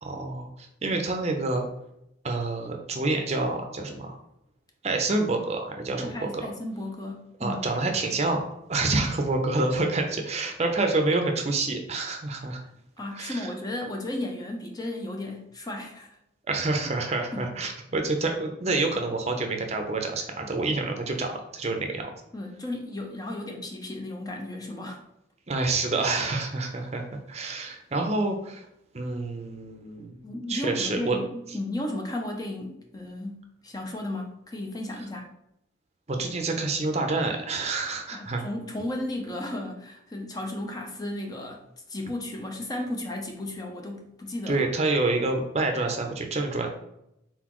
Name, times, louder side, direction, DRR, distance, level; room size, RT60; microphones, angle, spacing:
voice 1, 0.0-1.7 2.2-4.1 4.8-6.5 7.4-8.4 8.7-12.6 13.1-13.5 16.5-22.1 25.5-28.6 28.9-31.2 36.1-38.4 44.5-46.7, right 3 dB, 35° right, 4 dB, 0.6 m, -28 dB
voice 2, 6.0-7.6 13.0-16.1 17.3-17.5 22.3-25.0 30.2-35.3 38.1-41.6 41.9-44.7, left 1 dB, 20° left, 2 dB, 0.5 m, -34 dB
4.1 x 3.8 x 3.0 m, 0.81 s
head